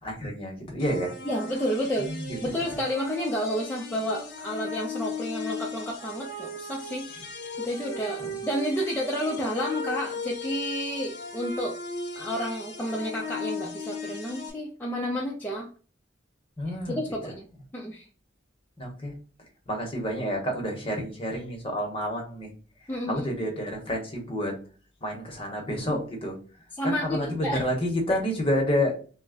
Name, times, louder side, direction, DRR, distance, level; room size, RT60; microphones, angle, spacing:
voice 1, 0.0-1.1 2.0-2.4 8.2-8.4 16.6-17.0 18.8-19.1 19.7-22.5 23.1-24.6 25.0-26.4 26.8-29.0, equal, 30° left, 1 dB, 0.9 m, -29 dB
sound 1, 0.8-14.5, left 3 dB, 55° left, 0.8 m, -37 dB
voice 2, 1.2-2.1 2.4-7.3 7.6-11.8 12.2-15.7 16.9-17.4 17.7-18.1 22.9-23.3 25.9-26.0 26.8-27.6, equal, 10° left, -3 dB, 0.5 m, -30 dB
3.2 x 2.1 x 3.7 m, 0.39 s
head